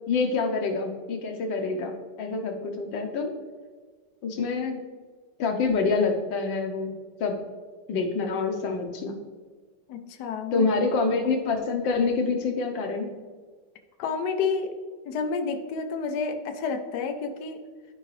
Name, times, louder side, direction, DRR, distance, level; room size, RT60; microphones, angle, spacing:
voice 1, 0.1-3.3 4.2-4.8 5.4-6.9 7.2-7.3 7.9-9.2 10.5-13.1, left 4 dB, 85° left, 3 dB, 1.6 m, -26 dB
voice 2, 9.9-10.7 14.0-14.7 15.0-17.6, left 5 dB, 70° left, 5 dB, 1.2 m, -30 dB
12.5 x 4.9 x 3.2 m, 1.5 s
omnidirectional pair, 2.0 m